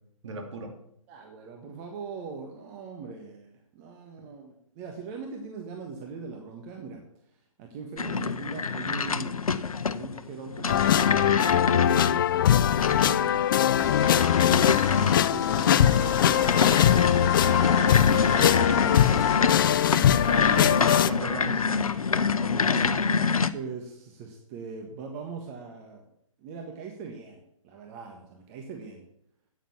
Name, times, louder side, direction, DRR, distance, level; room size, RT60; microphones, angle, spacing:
voice 1, 0.2-0.7 19.6-21.7 22.4-23.0, right 2 dB, 55° right, 4 dB, 2.9 m, -37 dB
voice 2, 1.1-7.0 7.3-9.4 9.9-13.8 15.1-18.7 23.5-26.0 26.4-29.0, right 5 dB, 25° right, 2 dB, 1.5 m, -41 dB
sound 1, 8.0-23.5, left 5 dB, 80° left, 0.8 m, -27 dB
sound 2, 10.7-21.1, left 10 dB, 40° left, 0.4 m, -22 dB
sound 3, 13.8-19.4, left 6 dB, 20° left, 1.1 m, -34 dB
9.3 x 8.9 x 7.2 m, 0.74 s
hypercardioid pair, 140°, 18 cm